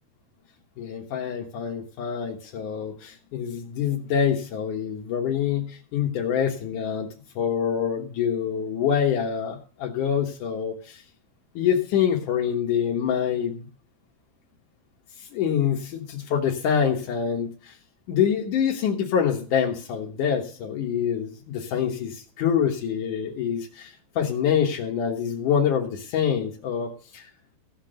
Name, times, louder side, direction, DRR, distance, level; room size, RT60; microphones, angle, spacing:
voice 1, 0.8-7.1 7.4-11.0 11.6-13.7 15.2-17.8 18.1-27.3, left 8 dB, 70° left, 1 dB, 1.9 m, -26 dB
16.5 x 6.0 x 6.5 m, 0.42 s
omnidirectional pair, 5.6 m